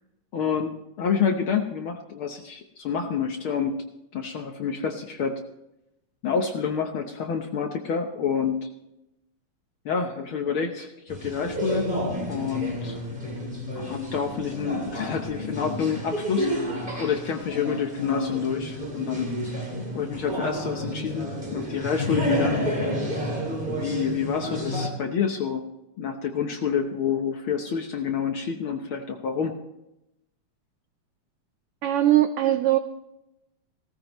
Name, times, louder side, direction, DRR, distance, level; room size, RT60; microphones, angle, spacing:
voice 1, 0.3-3.8 4.1-5.4 6.2-8.7 9.8-11.9 12.3-13.0 13.8-19.3 19.9-22.7 23.7-25.6 26.0-29.6, left 6 dB, 65° left, 4 dB, 1.4 m, -28 dB
sound 1, 11.1-24.9, left 1 dB, 15° right, 3.1 m, -30 dB
voice 2, 31.8-32.8, right 13 dB, 85° right, 9 dB, 1.2 m, -20 dB
18.0 x 14.0 x 3.0 m, 0.88 s
omnidirectional pair, 3.3 m